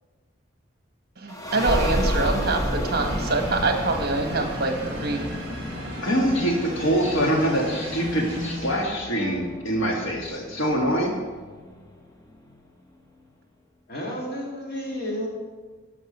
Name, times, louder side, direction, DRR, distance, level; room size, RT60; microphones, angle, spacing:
voice 1, 1.2-5.3, right 3 dB, 50° right, 4 dB, 1.2 m, -25 dB
sound 1, 1.3-12.6, equal, 15° left, 0.8 m, -32 dB
sound 2, 3.0-9.3, equal, 30° right, 2.7 m, -36 dB
voice 2, 6.0-11.2, right 1 dB, 75° left, 0 dB, 1.9 m, -24 dB
voice 3, 13.9-15.3, equal, 50° left, -3 dB, 2.6 m, -32 dB
12.0 x 6.2 x 5.4 m, 1.4 s
head